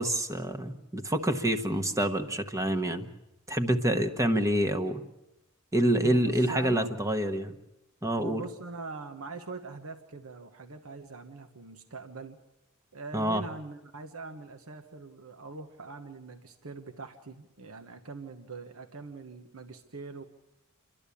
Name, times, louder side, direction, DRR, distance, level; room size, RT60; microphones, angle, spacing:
voice 1, 0.0-3.1 3.5-5.0 5.7-7.5 8.0-8.4 13.1-13.4, right 1 dB, 15° right, 7 dB, 1.2 m, -27 dB
voice 2, 6.0-6.9 8.2-12.4 12.9-20.2, right 3 dB, 80° right, 6 dB, 1.2 m, -42 dB
28.5 x 12.0 x 8.5 m, 0.96 s
head